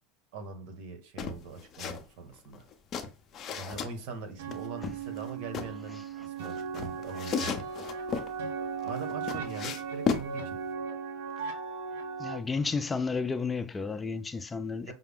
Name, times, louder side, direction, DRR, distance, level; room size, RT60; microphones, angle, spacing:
voice 1, 0.3-2.6 3.6-7.6 8.8-10.6 14.8-14.9, right 4 dB, 65° right, 1.3 m, -42 dB
sound 1, 1.2-2.0 2.3-3.9 4.5-5.7 6.4-8.3 8.8-10.3, left 6 dB, 35° left, 0.7 m, -34 dB
sound 2, 4.4-12.4, right 6 dB, 80° right, 1.1 m, -37 dB
voice 2, 12.2-14.9, left 4 dB, 15° left, 0.3 m, -32 dB
5.6 x 2.1 x 3.6 m
supercardioid pair, 120°, 0 cm